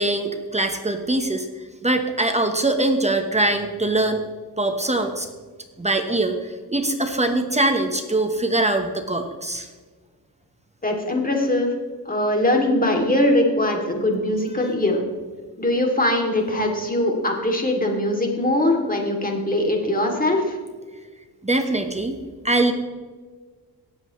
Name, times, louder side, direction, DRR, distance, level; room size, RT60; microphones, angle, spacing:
voice 1, 0.0-4.2 4.6-5.3 5.8-9.7 21.4-22.2 22.4-22.7, right 2 dB, 15° right, 5 dB, 1.1 m, -22 dB
voice 2, 10.8-11.7 12.0-15.0 15.6-20.6, left 1 dB, 20° left, 1 dB, 2.7 m, -21 dB
18.0 x 7.9 x 3.2 m, 1.4 s
cardioid pair, 95°, 43 cm